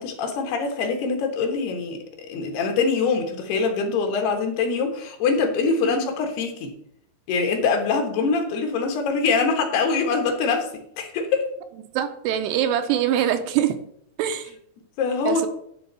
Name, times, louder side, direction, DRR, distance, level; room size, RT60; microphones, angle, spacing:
voice 1, 0.0-6.7 7.3-10.7 11.0-11.5 15.0-15.5, left 4 dB, 70° left, 3 dB, 3.2 m, -24 dB
voice 2, 11.9-13.8 14.2-14.5 15.3-15.5, right 10 dB, 80° right, 8 dB, 2.6 m, -23 dB
11.0 x 3.8 x 6.7 m, 0.70 s
omnidirectional pair, 4.9 m